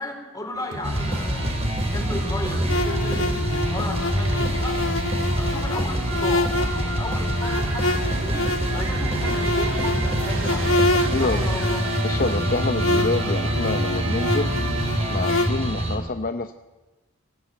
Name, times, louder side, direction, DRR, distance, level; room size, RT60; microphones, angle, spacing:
voice 1, 0.0-4.8 5.4-10.8 11.2-11.8, left 1 dB, 15° left, 2 dB, 4.1 m, -34 dB
sound 1, 0.5-16.0, right 3 dB, 75° right, 2.3 m, -35 dB
sound 2, 0.8-16.0, equal, 30° right, 3.8 m, -25 dB
sound 3, 2.7-15.5, left 2 dB, 70° left, 1.6 m, -27 dB
voice 2, 12.0-14.5 15.0-16.5, left 3 dB, 40° left, 8 dB, 0.7 m, -27 dB
24.0 x 15.0 x 9.1 m, 1.2 s
head